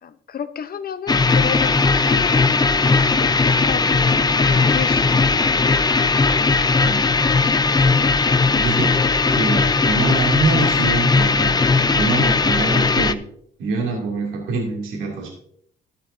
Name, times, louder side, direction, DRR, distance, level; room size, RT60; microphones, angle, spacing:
voice 1, 0.0-1.7 2.0-2.5 3.2-5.7 6.4-7.0 9.6-9.9 13.9-14.0, left 7 dB, 50° left, 12 dB, 0.8 m, -33 dB
sound 1, 1.1-13.1, left 4 dB, 20° left, 0.6 m, -18 dB
voice 2, 6.8-7.3 8.5-8.9 9.3-11.6 11.9-13.2 13.6-15.3, right 3 dB, 80° right, -1 dB, 2.7 m, -24 dB
12.5 x 11.5 x 2.7 m, 0.66 s
cardioid pair, 90°, 20 cm